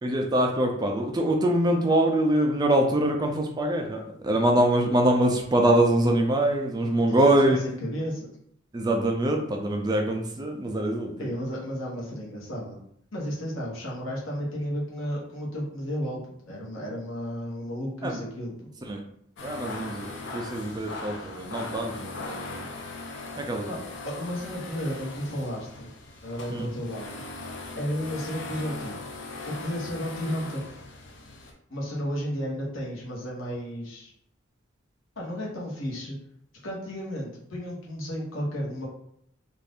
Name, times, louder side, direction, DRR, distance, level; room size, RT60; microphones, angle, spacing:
voice 1, 0.0-7.6 8.7-11.3 18.0-18.2 18.9-19.0 19.4-22.7 23.4-23.7 26.5-26.7, right 1 dB, 20° right, 2 dB, 0.4 m, -24 dB
voice 2, 6.9-8.3 11.2-12.8 13.1-16.2 16.5-18.7 23.7-23.8 24.0-25.9 26.2-27.2 27.8-29.0 29.5-30.6 31.7-34.1 35.2-36.2 36.6-38.9, equal, 80° left, -3 dB, 1.0 m, -33 dB
sound 1, 19.4-31.5, left 3 dB, 60° left, 0.5 m, -39 dB
2.5 x 2.4 x 3.4 m, 0.71 s
head